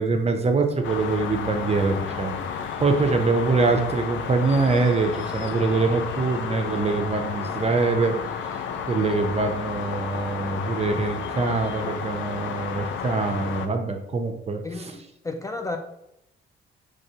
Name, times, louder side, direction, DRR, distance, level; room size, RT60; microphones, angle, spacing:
voice 1, 0.0-8.1 8.9-14.9, right 3 dB, 30° right, 5 dB, 0.7 m, -24 dB
sound 1, 0.8-13.7, left 7 dB, 75° left, 0.5 m, -32 dB
voice 2, 14.6-15.8, left 3 dB, 15° left, 4 dB, 0.4 m, -33 dB
5.1 x 3.3 x 2.8 m, 0.83 s
cardioid pair, 90°, 20 cm